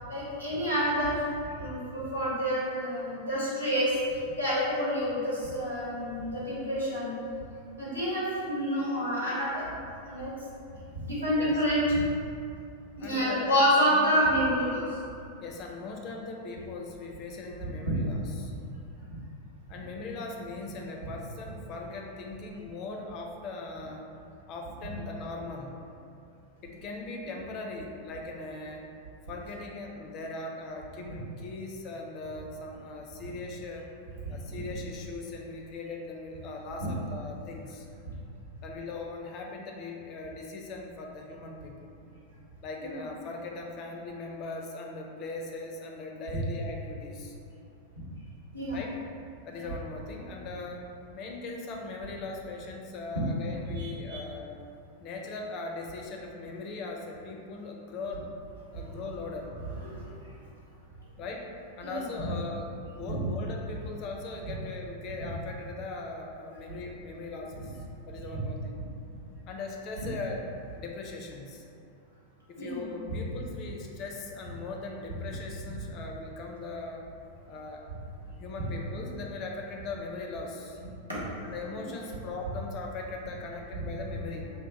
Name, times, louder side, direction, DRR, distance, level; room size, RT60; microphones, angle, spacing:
voice 1, 0.1-1.2 1.6-7.1 7.8-9.6 10.1-10.3 10.9-11.8 12.9-14.8 42.8-42.9 48.5-48.8 49.6-49.7 53.8-54.2 58.8-58.9 59.9-60.3 61.8-62.1 72.5-72.9 81.1-81.2, equal, 85° right, -9 dB, 1.0 m, -28 dB
voice 2, 13.0-13.5 13.9-14.1 15.4-18.5 19.7-24.1 24.5-25.8 26.6-28.9 29.3-33.9 34.3-37.9 38.6-42.0 42.6-47.3 48.7-48.9 49.5-54.6 55.0-58.3 58.7-59.5 61.1-61.5 61.8-67.8 68.1-68.8 69.5-70.4 70.7-71.7 72.5-77.1 77.5-77.8 78.4-80.8 81.4-84.5, left 3 dB, 40° left, 1 dB, 0.4 m, -39 dB
2.8 x 2.0 x 3.9 m, 2.5 s
figure-of-eight pair, 90°, 0 cm